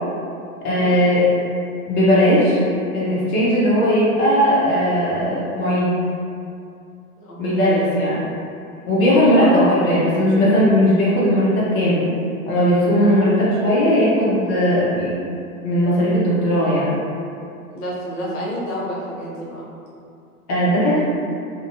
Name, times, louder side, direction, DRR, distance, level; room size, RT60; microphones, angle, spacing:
voice 1, 0.6-1.2 1.9-6.0 7.4-8.2 8.9-12.1 12.5-15.1 15.6-17.0 20.5-21.0, equal, 35° left, -8 dB, 0.6 m, -17 dB
voice 2, 7.2-8.2 9.4-9.8 13.0-13.5 17.7-19.6, equal, 60° left, -6 dB, 0.8 m, -30 dB
2.6 x 2.1 x 2.5 m, 2.5 s
hypercardioid pair, 105°, 44 cm